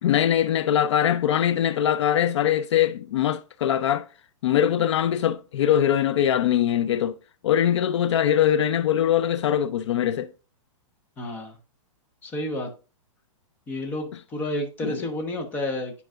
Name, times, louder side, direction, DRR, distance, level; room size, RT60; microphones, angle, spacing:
voice 1, 0.0-4.1 4.4-7.1 7.4-10.3 14.8-15.1, left 10 dB, 60° left, 0.5 m, -22 dB
voice 2, 11.2-11.6 12.2-12.7 13.7-16.0, left 1 dB, 10° left, 0.8 m, -30 dB
9.1 x 5.3 x 2.4 m
hypercardioid pair, 170°, 17 cm